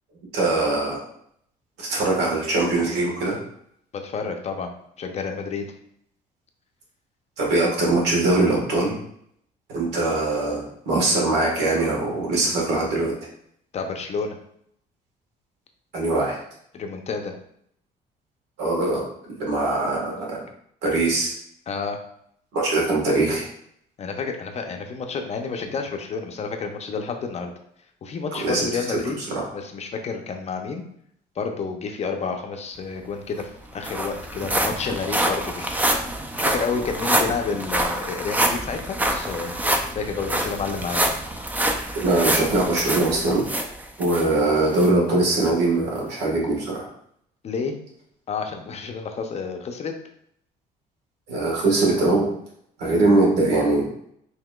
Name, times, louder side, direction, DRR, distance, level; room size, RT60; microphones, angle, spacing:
voice 1, 0.3-1.0 1.8-3.4 7.4-8.9 9.7-13.1 15.9-16.4 18.6-20.4 20.8-21.3 22.5-23.5 28.4-29.5 41.9-43.5 44.0-46.9 51.3-52.2 52.8-53.9, right 2 dB, 85° right, -2 dB, 1.5 m, -22 dB
voice 2, 3.9-4.7 5.0-5.7 13.7-14.4 16.7-17.3 21.7-22.0 24.0-27.5 28.0-29.2 29.5-30.8 31.4-35.8 36.4-39.6 39.9-41.0 47.4-47.8 48.3-49.9, left 5 dB, 40° left, 4 dB, 0.6 m, -30 dB
sound 1, 33.0-33.1 33.4-44.3 44.8-44.9 45.4-45.5, right 1 dB, 10° right, 0.4 m, -26 dB
5.6 x 2.8 x 2.3 m, 0.69 s
cardioid pair, 110°, 17 cm